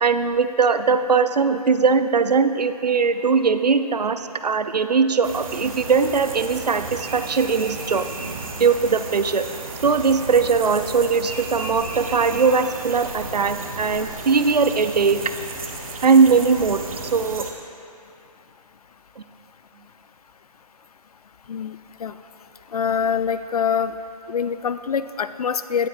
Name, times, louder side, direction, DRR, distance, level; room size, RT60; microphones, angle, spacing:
voice 1, 0.0-8.1 8.6-9.4 9.8-15.2 16.0-16.8 17.1-17.4 19.2-19.3, right 5 dB, 80° right, 10 dB, 0.5 m, -20 dB
sound 1, 5.2-17.5, right 3 dB, 55° right, 0.9 m, -34 dB
voice 2, 22.7-23.9 24.3-25.9, left 7 dB, 65° left, 13 dB, 0.4 m, -24 dB
17.5 x 5.9 x 2.5 m, 2.6 s
figure-of-eight pair, 150°, 21 cm